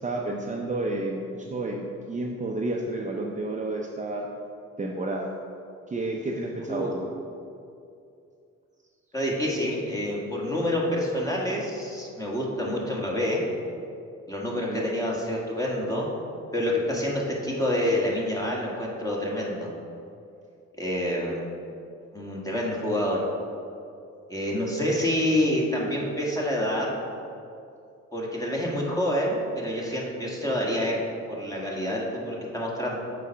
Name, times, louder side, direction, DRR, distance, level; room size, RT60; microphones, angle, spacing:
voice 1, 0.0-4.3 4.8-5.3 5.9-7.1 14.5-14.8, right 2 dB, 25° right, 0 dB, 0.6 m, -31 dB
voice 2, 9.1-13.4 14.3-16.1 16.5-19.7 20.8-21.4 22.1-23.2 24.3-27.0 28.1-31.0 31.3-33.0, left 1 dB, 10° left, -3 dB, 1.6 m, -27 dB
7.2 x 4.1 x 5.7 m, 2.5 s
cardioid pair, 90°, 30 cm